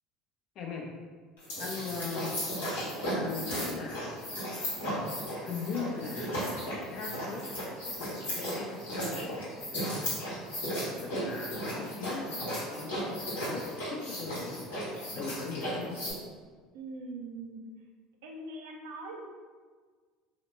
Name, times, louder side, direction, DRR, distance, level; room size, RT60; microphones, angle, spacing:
voice 1, 0.5-0.9 1.6-2.4 3.2-4.3 5.4-6.4 6.9-7.5 7.8-9.3 9.7-10.0 10.6-14.7 15.2-16.0, left 4 dB, 55° left, 0 dB, 0.6 m, -40 dB
sound 1, 1.4-16.1, equal, 90° left, 1.1 m, -35 dB
voice 2, 16.7-17.6 18.2-19.2, right 2 dB, 80° right, 1 dB, 0.5 m, -42 dB
2.9 x 2.1 x 3.1 m, 1.5 s
hypercardioid pair, 80°, 0 cm